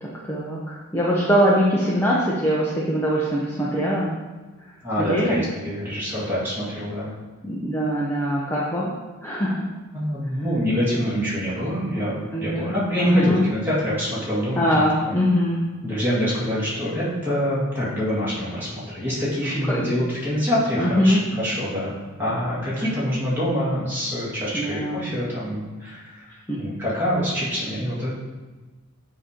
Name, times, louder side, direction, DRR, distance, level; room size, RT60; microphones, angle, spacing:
voice 1, 0.0-4.1 4.6-5.4 7.4-8.9 9.2-9.7 12.3-13.4 14.5-15.6 19.6-20.0 20.7-21.2 24.5-25.1 26.5-26.6, equal, 10° left, -6 dB, 0.6 m, -22 dB
voice 2, 4.8-7.1 9.9-15.1 15.8-28.1, equal, 10° right, -9 dB, 1.9 m, -26 dB
7.8 x 2.9 x 5.0 m, 1.3 s
head